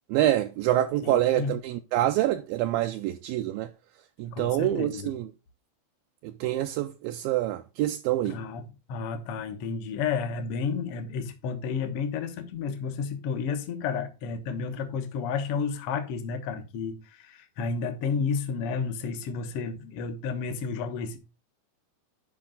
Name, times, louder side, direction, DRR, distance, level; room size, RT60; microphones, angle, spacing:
voice 1, 0.1-3.7 4.2-5.3 6.2-8.4, right 13 dB, 80° right, 2.2 m, -26 dB
voice 2, 1.0-1.6 4.3-5.1 8.2-8.6 8.9-21.2, left 5 dB, 70° left, 1.4 m, -31 dB
10.5 x 5.1 x 3.7 m
omnidirectional pair, 4.4 m